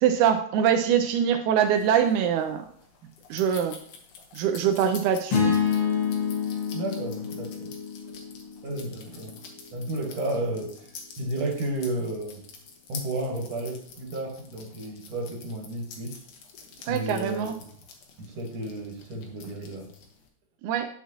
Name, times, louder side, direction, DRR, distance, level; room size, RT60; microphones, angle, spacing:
voice 1, 0.0-2.7 3.3-3.8 4.3-5.5 16.9-17.5 20.6-20.9, right 8 dB, 90° right, 6 dB, 2.0 m, -23 dB
sound 1, 1.7-20.3, left 5 dB, 70° left, 2.1 m, -48 dB
sound 2, 5.3-9.6, left 6 dB, 50° left, 2.2 m, -28 dB
voice 2, 6.7-7.7 8.6-9.4 9.7-10.7 11.2-12.4 12.9-16.2 16.8-17.7 18.2-19.9, right 1 dB, 65° right, 0 dB, 2.6 m, -32 dB
9.2 x 5.7 x 2.9 m, 0.62 s
omnidirectional pair, 3.3 m